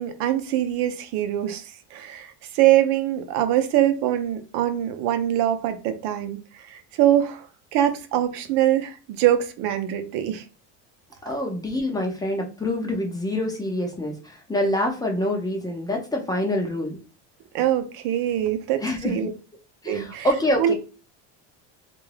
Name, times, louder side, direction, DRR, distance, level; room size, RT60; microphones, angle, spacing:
voice 1, 0.0-6.4 6.6-7.5 7.7-10.4 17.5-19.3 19.9-20.7, right 12 dB, 85° right, 0.7 m, -23 dB
voice 2, 11.2-17.0 18.8-19.3 19.8-20.7, left 1 dB, 10° left, 0.6 m, -26 dB
3.4 x 2.5 x 3.2 m
cardioid pair, 155°, 38 cm